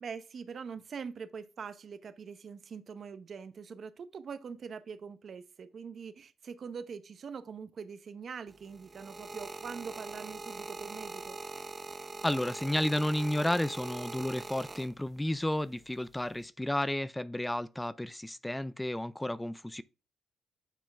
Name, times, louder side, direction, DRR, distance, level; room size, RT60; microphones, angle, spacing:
voice 1, 0.0-11.4, right 6 dB, 50° right, 0.9 m, -43 dB
sound 1, 8.5-15.3 16.1-16.5, right 3 dB, 25° right, 0.7 m, -43 dB
voice 2, 12.2-19.8, left 1 dB, 10° left, 0.4 m, -32 dB
9.1 x 4.4 x 3.4 m
cardioid pair, 90°, 0 cm